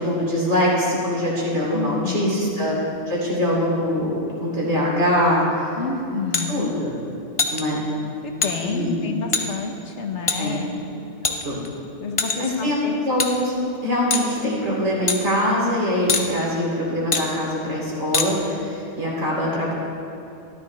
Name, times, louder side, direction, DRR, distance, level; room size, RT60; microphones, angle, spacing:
voice 1, 0.0-2.8 3.1-5.8 6.5-6.9 7.5-7.8 8.6-9.1 10.4-10.7 11.3-11.6 12.3-13.5 13.8-19.7, equal, 70° right, -5 dB, 2.9 m, -23 dB
voice 2, 1.7-2.4 5.8-6.7 8.2-10.8 12.0-13.0, left 4 dB, 70° left, 4 dB, 1.2 m, -29 dB
sound 1, 6.3-6.5 7.4-7.6 8.4-8.5 9.3-9.5 10.3-10.4 11.2-11.7 12.2-12.6 13.2-13.3 14.1-14.3 15.1-15.2 16.1-16.3 17.1-17.3 18.1-18.3, left 4 dB, 35° left, 0.6 m, -22 dB
13.0 x 11.5 x 3.2 m, 2.8 s
omnidirectional pair, 1.2 m